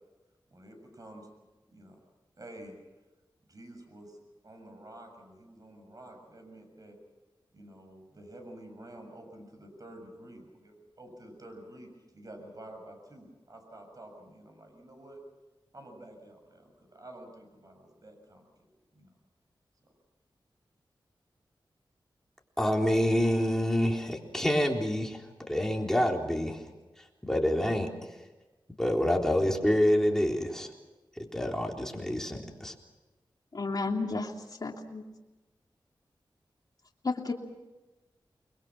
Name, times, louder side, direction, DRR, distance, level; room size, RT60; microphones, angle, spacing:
voice 1, 0.5-1.3 1.7-2.0 2.4-2.8 3.5-4.2 4.4-7.0 7.5-11.9 12.1-15.2 15.7-18.4 18.9-19.1, right 1 dB, 45° right, 4 dB, 7.0 m, -49 dB
voice 2, 22.6-25.2 25.5-26.6 27.2-27.9 28.8-30.7 31.2-32.7, equal, 5° left, 1 dB, 3.8 m, -27 dB
voice 3, 33.5-34.3 34.6-35.0 37.0-37.3, left 3 dB, 50° left, 0 dB, 3.0 m, -32 dB
29.0 x 22.0 x 6.1 m, 1.1 s
wide cardioid pair, 80°, 9 cm